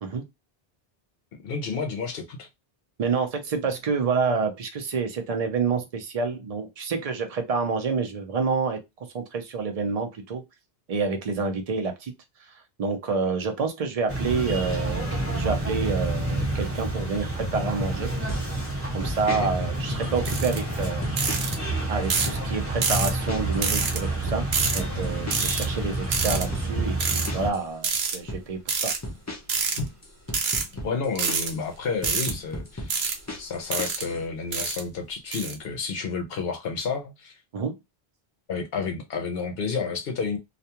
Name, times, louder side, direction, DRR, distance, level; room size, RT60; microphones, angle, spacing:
voice 1, 1.3-2.5 19.3-19.5 29.8-29.9 30.8-33.0 33.4-37.4 38.5-40.4, left 5 dB, 70° left, 0.8 m, -30 dB
voice 2, 3.0-8.8 9.1-10.4 10.9-12.1 12.4-18.1 18.9-21.0 21.9-24.5 24.7-28.9 37.5-37.7, right 4 dB, 45° right, 0.6 m, -28 dB
sound 1, 14.1-27.5, right 2 dB, 15° right, 0.8 m, -29 dB
sound 2, 18.3-18.7 19.0-19.4 20.0-20.6 21.0-21.6 21.9-22.4 23.0-23.6 23.9-27.6 28.0-28.4 29.0-31.6 32.0-34.2, left 1 dB, 20° left, 0.5 m, -36 dB
sound 3, 20.3-20.6 21.2-21.6 22.1-22.4 22.8-23.1 23.6-24.0 24.5-24.8 25.3-25.7 26.1-26.4 27.0-27.3 27.8-28.2 28.7-29.0 29.5-29.8 30.3-30.6 31.2-31.5 32.0-32.3 32.9-33.2 33.7-34.0 34.5-34.8 35.3-35.5, right 5 dB, 80° right, 0.9 m, -26 dB
2.4 x 2.2 x 2.8 m
omnidirectional pair, 1.0 m